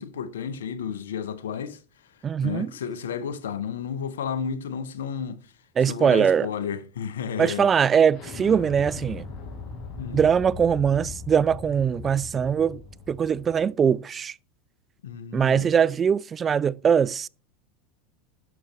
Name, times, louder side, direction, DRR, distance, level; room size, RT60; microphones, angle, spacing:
voice 1, 0.0-1.8 2.4-5.4 5.9-7.7 10.0-10.3 15.0-15.7, left 7 dB, 80° left, 0.9 m, -32 dB
voice 2, 2.2-2.7 5.8-6.5 7.4-9.2 10.1-12.8 13.1-14.3 15.3-17.3, right 7 dB, 30° right, 0.3 m, -22 dB
Explosion, 8.1-13.6, left 5 dB, 50° left, 4.4 m, -39 dB
11.0 x 6.6 x 3.0 m
hypercardioid pair, 90°, 0 cm